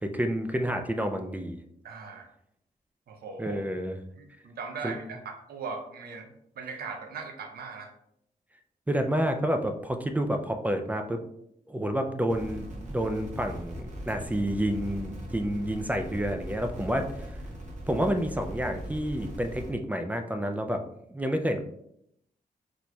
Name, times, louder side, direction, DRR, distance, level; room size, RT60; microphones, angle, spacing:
voice 1, 0.0-1.6 3.4-4.0 4.8-5.0 8.9-11.2 11.7-17.1 17.9-20.8 21.1-21.6, equal, 10° right, 5 dB, 0.3 m, -29 dB
voice 2, 1.8-2.3 3.1-3.6 4.2-6.3 6.6-7.9, right 4 dB, 85° right, 4 dB, 0.6 m, -39 dB
sound 1, 12.3-19.7, equal, 50° right, 1.0 m, -40 dB
4.1 x 3.0 x 2.2 m, 0.75 s
wide cardioid pair, 105°, 16 cm